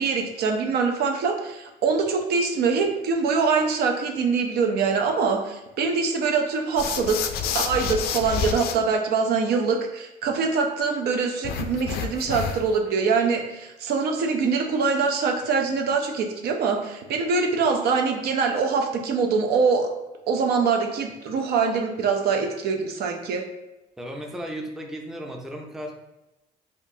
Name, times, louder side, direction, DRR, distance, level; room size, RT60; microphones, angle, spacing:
voice 1, 0.0-7.2 7.5-19.9 20.3-23.4, right 5 dB, 70° right, 3 dB, 0.6 m, -24 dB
sound 1, 6.8-8.7 11.4-12.8, left 7 dB, 70° left, 0.4 m, -29 dB
voice 2, 24.0-25.9, equal, 5° right, 2 dB, 0.4 m, -35 dB
4.2 x 2.5 x 2.7 m, 1.0 s
cardioid pair, 110°, 17 cm